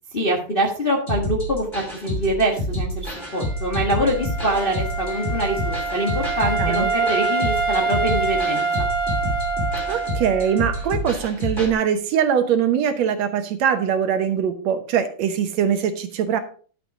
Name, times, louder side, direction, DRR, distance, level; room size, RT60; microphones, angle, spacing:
voice 1, 0.1-8.9, right 1 dB, 35° left, -1 dB, 0.9 m, -24 dB
sound 1, 1.1-11.7, equal, 15° left, 3.1 m, -28 dB
Wind instrument woodwind instrument, 3.2-10.9, right 4 dB, 20° right, 1.8 m, -26 dB
voice 2, 6.6-6.9 9.9-16.4, right 8 dB, 70° right, 8 dB, 2.0 m, -22 dB
11.5 x 5.8 x 4.8 m, 0.42 s
omnidirectional pair, 3.5 m